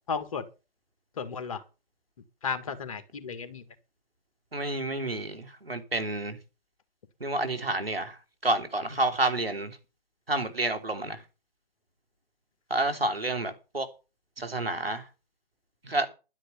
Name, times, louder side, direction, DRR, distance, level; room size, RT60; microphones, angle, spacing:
voice 1, 0.1-0.4 1.2-1.6 2.4-3.6, left 5 dB, 35° left, 1.6 m, -33 dB
voice 2, 4.5-6.4 7.2-9.8 10.3-11.2 12.7-13.9 14.4-15.1 15.8-16.1, right 2 dB, 80° right, 3.2 m, -29 dB
11.5 x 10.0 x 5.7 m
figure-of-eight pair, 145°, 29 cm